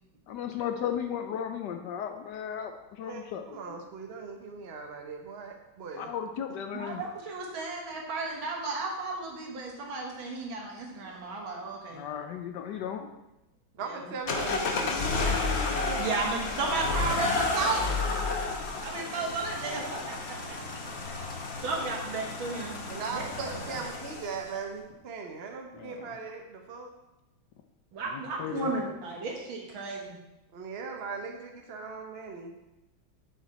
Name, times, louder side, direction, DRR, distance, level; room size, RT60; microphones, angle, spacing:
voice 1, 0.3-3.5 6.0-7.0 11.9-13.1 25.8-26.0 28.4-28.7, left 8 dB, 70° left, 7 dB, 1.1 m, -35 dB
voice 2, 3.0-6.1 6.5-6.6 13.8-15.4 22.9-26.9 30.5-32.5, right 4 dB, 60° right, 3 dB, 0.6 m, -39 dB
voice 3, 6.7-12.0 13.8-14.1 16.0-18.0 18.8-20.4 21.6-22.8 23.1-23.2 23.7-23.8 27.9-30.2, right 3 dB, 80° right, -1 dB, 2.2 m, -33 dB
sound 1, 14.3-24.5, left 3 dB, 50° left, 0.9 m, -32 dB
7.3 x 7.2 x 4.1 m, 0.96 s
omnidirectional pair, 2.2 m